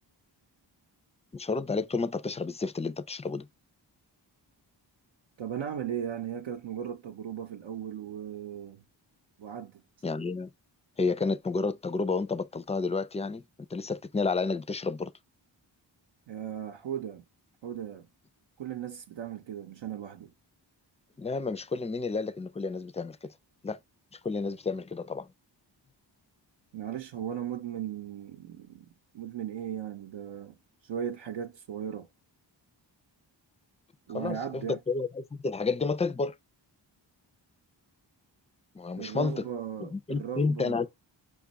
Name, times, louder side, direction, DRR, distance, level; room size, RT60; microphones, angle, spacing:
voice 1, 1.3-3.5 10.0-10.5 11.0-13.4 13.7-15.1 21.2-23.3 23.6-23.8 24.2-25.3 34.1-36.3 38.7-39.4 39.8-40.9, left 4 dB, 15° left, 0.3 m, -30 dB
voice 2, 5.4-8.8 9.4-9.8 16.3-17.2 17.6-18.1 18.6-20.3 26.7-28.9 29.1-30.6 30.8-32.1 34.1-34.8 39.0-40.9, right 9 dB, 85° right, 0.7 m, -37 dB
5.2 x 2.4 x 4.0 m
wide cardioid pair, 80°, 45 cm